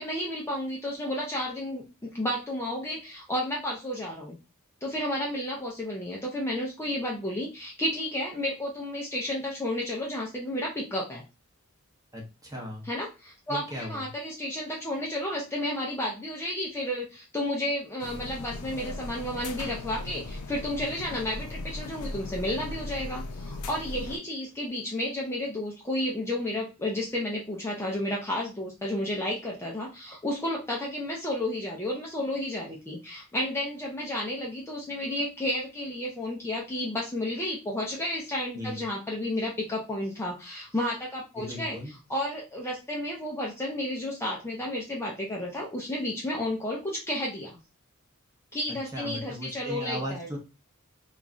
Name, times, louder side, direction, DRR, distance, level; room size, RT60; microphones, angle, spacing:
voice 1, 0.0-4.4 4.8-11.2 12.8-41.8 42.1-47.6 48.5-50.3, left 1 dB, 10° left, -3 dB, 0.4 m, -32 dB
voice 2, 12.1-12.9 13.5-14.0 38.5-38.8 41.4-41.9 48.9-50.4, equal, 15° right, -1 dB, 0.8 m, -37 dB
sound 1, 18.0-24.2, left 2 dB, 90° left, 0.5 m, -38 dB
3.0 x 2.3 x 2.4 m, 0.29 s
head